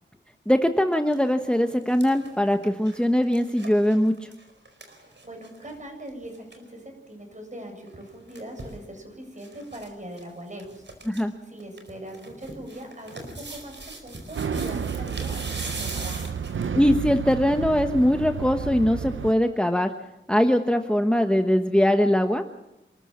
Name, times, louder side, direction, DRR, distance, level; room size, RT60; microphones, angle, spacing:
voice 1, 0.5-4.3 11.1-11.3 16.7-19.9 20.3-22.4, equal, 5° left, 6 dB, 1.3 m, -21 dB
sound 1, 0.9-1.1 1.5-5.8 6.1-6.2 6.3-6.6 7.9-8.8 9.4-9.9 10.1-10.2 10.6-11.2 11.6-16.8 17.3-17.4, right 2 dB, 70° right, 4.7 m, -41 dB
voice 2, 5.0-16.3, right 1 dB, 40° right, 3 dB, 7.7 m, -41 dB
sound 2, 14.4-19.3, right 7 dB, 85° right, 0.7 m, -31 dB
27.5 x 14.0 x 7.4 m, 0.93 s
wide cardioid pair, 65°, 20 cm